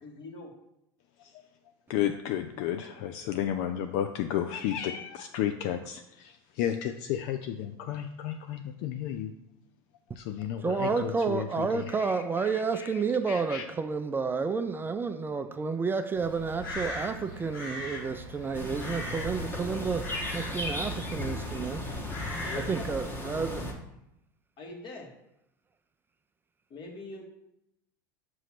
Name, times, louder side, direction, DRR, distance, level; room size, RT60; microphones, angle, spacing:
voice 1, 0.0-0.5 22.4-23.0 24.6-25.1 26.7-27.2, left 3 dB, 45° left, 1.6 m, -42 dB
voice 2, 1.9-9.3 10.2-12.9 13.3-13.7, left 10 dB, 65° left, 0.5 m, -33 dB
voice 3, 10.6-21.9 22.7-23.8, right 5 dB, 20° right, 0.4 m, -30 dB
Crow, 16.1-23.0, left 1 dB, 85° left, 2.2 m, -40 dB
sound 1, 18.5-23.7, left 1 dB, 20° left, 1.3 m, -36 dB
6.2 x 3.1 x 5.8 m
hypercardioid pair, 95°, 11 cm